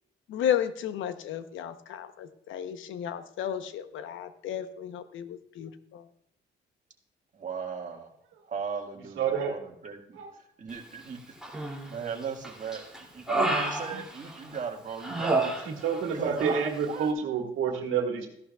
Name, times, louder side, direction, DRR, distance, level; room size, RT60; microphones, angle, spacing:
voice 1, 0.3-6.1, left 9 dB, 80° left, 11 dB, 0.8 m, -33 dB
voice 2, 7.3-8.1 8.5-10.2 10.6-11.4 11.8-15.5 16.1-17.1, right 6 dB, 40° right, 1 dB, 1.8 m, -37 dB
voice 3, 9.2-9.6 10.1-10.3 15.6-18.3, right 6 dB, 85° right, 2 dB, 1.8 m, -28 dB
Human voice, 11.4-12.0 12.4-14.6 15.0-16.1 16.4-16.6, right 2 dB, 5° right, 2.5 m, -30 dB
14.5 x 11.5 x 2.3 m, 0.72 s
cardioid pair, 90°, 20 cm